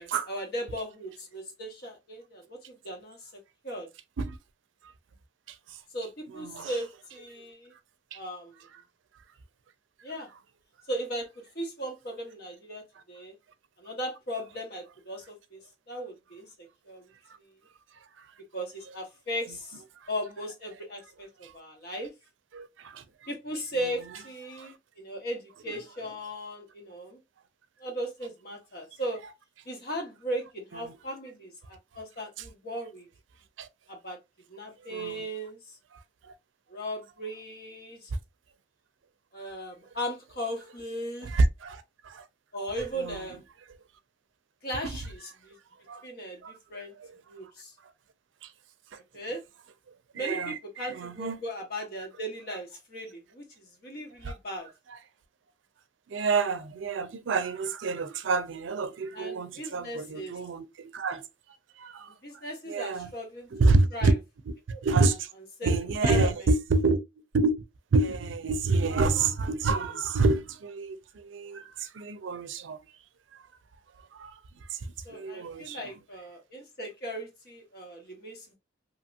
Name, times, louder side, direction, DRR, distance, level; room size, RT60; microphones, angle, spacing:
voice 1, 0.0-3.3 3.6-3.9 5.9-7.7 8.1-8.6 10.0-10.3 10.9-11.3 11.5-13.4 13.8-15.6 15.9-16.5 16.9-17.1 17.4-17.5 18.5-19.8 20.1-22.1 23.3-27.2 27.8-29.2 29.6-33.1 33.9-34.2 34.5-35.7 36.7-38.1 39.3-41.3 42.5-43.4 44.6-45.6 46.0-46.9 47.3-47.7 49.1-49.4 50.1-54.7 59.1-60.4 62.0-63.5 63.9-64.2 64.7-65.1 65.6-65.7 66.0-66.3 75.0-78.6, equal, 55° left, 1.0 m, -37 dB
voice 2, 6.3-6.7 8.1-8.2 21.4-21.5 22.5-23.0 24.5-24.7 30.7-30.8 33.6-33.7 34.8-35.3 35.9-36.3 41.2-42.2 43.0-43.2 45.9-46.1 46.4-46.6 47.0-47.1 48.4-48.5 48.9-49.0 50.1-51.4 54.2-54.4 56.1-61.3 61.8-62.1 62.7-63.1 63.5-64.1 64.5-64.6 64.8-65.3 65.6-67.0 67.3-67.6 67.9-72.8 74.1-74.4 74.7-74.8 75.1-75.9, right 3 dB, 80° right, 0.4 m, -28 dB
2.8 x 2.8 x 2.4 m
head